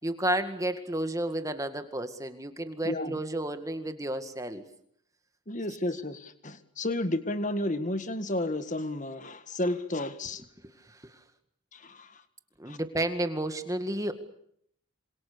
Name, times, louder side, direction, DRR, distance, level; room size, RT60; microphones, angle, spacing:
voice 1, 0.0-4.7 10.6-11.2 12.6-14.1, right 1 dB, 15° right, 8 dB, 2.0 m, -32 dB
voice 2, 2.8-3.2 5.5-10.4 11.7-12.2 12.7-12.8, left 1 dB, 35° left, 10 dB, 1.8 m, -32 dB
27.5 x 26.5 x 6.9 m, 0.69 s
head